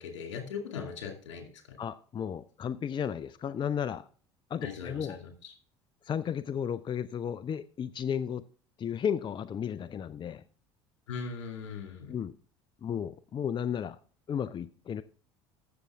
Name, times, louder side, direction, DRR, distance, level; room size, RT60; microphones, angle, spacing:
voice 1, 0.0-1.8 4.6-5.5 11.1-12.1, left 5 dB, 80° left, 4 dB, 2.4 m, -40 dB
voice 2, 1.8-4.1 4.5-5.2 6.0-8.4 8.8-10.4 12.1-12.3 12.8-14.0 14.3-15.0, left 8 dB, 30° left, 15 dB, 0.5 m, -33 dB
14.5 x 6.8 x 3.5 m, 0.42 s
hypercardioid pair, 65°, 15 cm